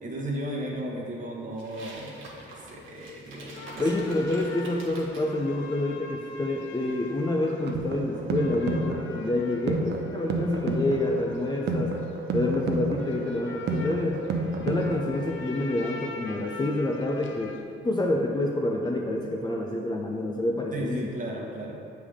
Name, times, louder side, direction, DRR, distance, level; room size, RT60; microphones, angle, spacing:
voice 1, 0.0-3.9 20.7-21.8, right 1 dB, 40° right, -2 dB, 1.1 m, -35 dB
sound 1, 1.6-5.3, right 2 dB, 80° right, 1.3 m, -46 dB
sound 2, 3.5-17.6, left 4 dB, 70° left, 0.8 m, -45 dB
voice 2, 3.8-12.0 12.3-14.2 14.6-21.1, left 1 dB, 20° left, -1 dB, 0.5 m, -28 dB
sound 3, 7.4-15.4, right 2 dB, 60° right, 0.6 m, -30 dB
7.2 x 3.4 x 5.0 m, 2.6 s
cardioid pair, 90°, 20 cm